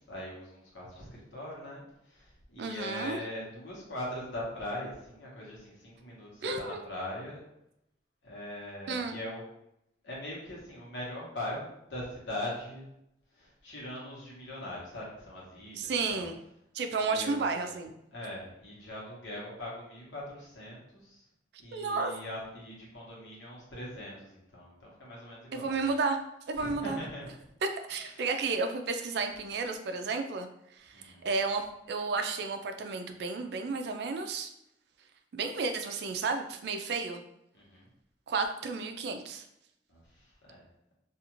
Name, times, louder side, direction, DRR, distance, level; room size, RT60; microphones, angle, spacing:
voice 1, 0.0-7.4 8.2-9.4 10.0-12.9 13.3-16.3 17.0-17.8 18.1-21.3 21.6-25.9 26.6-27.3 28.0-28.3 30.9-31.2 37.5-37.9 39.9-40.6, left 1 dB, 90° left, -4 dB, 1.0 m, -41 dB
voice 2, 2.6-3.2 6.4-6.8 8.9-9.2 15.8-16.3 16.7-17.9 21.7-22.1 25.5-26.2 26.5-27.0 27.6-30.5 30.8-34.5 35.3-37.2 38.3-39.4, right 4 dB, 65° right, 7 dB, 0.3 m, -32 dB
2.4 x 2.4 x 2.9 m, 0.80 s
head